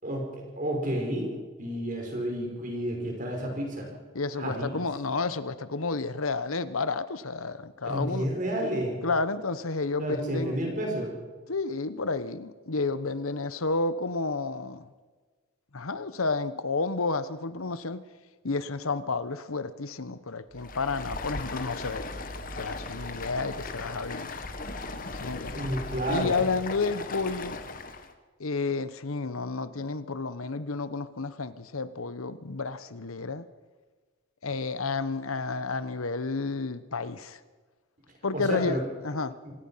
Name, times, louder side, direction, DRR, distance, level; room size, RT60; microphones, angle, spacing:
voice 1, 0.0-3.9 4.4-4.8 7.8-9.0 10.0-11.1 25.5-26.4 38.3-38.8, equal, 40° right, 1 dB, 5.5 m, -31 dB
voice 2, 4.1-8.3 9.0-10.6 11.5-14.9 15.7-18.0 18.4-22.0 22.6-24.3 25.2-25.6 26.1-27.6 28.4-33.5 34.4-37.4 38.2-38.8 39.0-39.3, left 3 dB, 85° left, 14 dB, 1.1 m, -31 dB
Stream, 20.5-28.1, left 3 dB, 40° left, 1.5 m, -38 dB
sound 1, 20.5-26.1, right 2 dB, 60° right, 3.7 m, -46 dB
26.0 x 18.5 x 5.8 m, 1.4 s
head